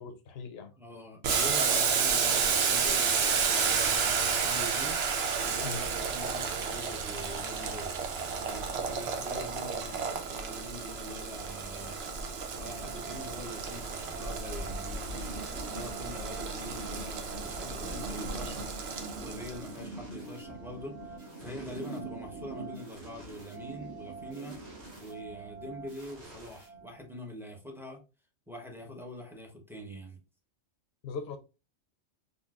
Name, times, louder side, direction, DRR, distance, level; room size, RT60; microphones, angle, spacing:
voice 1, 0.0-0.7 5.6-5.9 9.2-9.4 31.0-31.4, left 5 dB, 65° left, 0.8 m, -40 dB
voice 2, 0.8-7.9 8.4-12.0 12.5-15.3 15.7-18.7 19.2-24.6 25.0-28.0 28.5-30.2, equal, 5° right, 0.6 m, -44 dB
Boiling, 1.2-19.7, right 6 dB, 65° right, 0.8 m, -31 dB
sound 1, 6.9-25.2, right 2 dB, 80° right, 1.4 m, -47 dB
sound 2, 12.6-27.2, right 3 dB, 35° right, 1.4 m, -48 dB
3.8 x 2.6 x 2.3 m
omnidirectional pair, 1.2 m